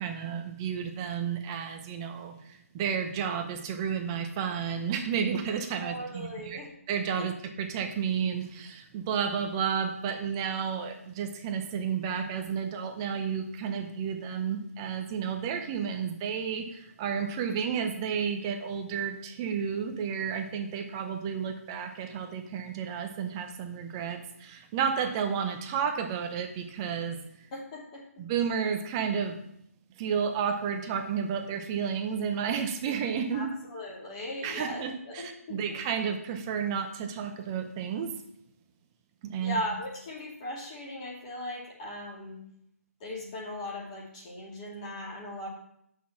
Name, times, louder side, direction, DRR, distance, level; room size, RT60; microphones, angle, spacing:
voice 1, 0.0-6.6 6.9-7.3 7.6-27.5 28.2-29.4 30.0-33.5 34.4-38.1 39.2-39.6, right 7 dB, 15° right, 5 dB, 0.7 m, -31 dB
voice 2, 5.8-6.7 7.2-7.3 27.5-28.0 33.3-35.8 39.4-42.4 43.0-45.5, left 1 dB, 25° left, -3 dB, 2.4 m, -38 dB
8.3 x 6.2 x 5.8 m, 0.73 s
hypercardioid pair, 165°, 8 cm